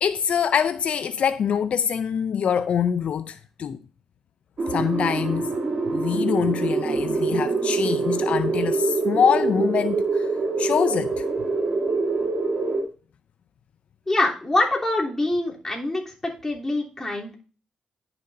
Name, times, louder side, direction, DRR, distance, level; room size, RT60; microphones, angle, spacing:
voice 1, 0.0-3.8 4.7-5.5 5.9-10.3 10.6-11.2, left 7 dB, 65° left, 0.4 m, -24 dB
sound 1, 4.6-12.8, right 3 dB, 50° right, 2.7 m, -25 dB
voice 2, 14.1-17.3, left 2 dB, 20° left, 3.3 m, -25 dB
11.0 x 6.8 x 2.7 m
cardioid pair, 70°, 2 cm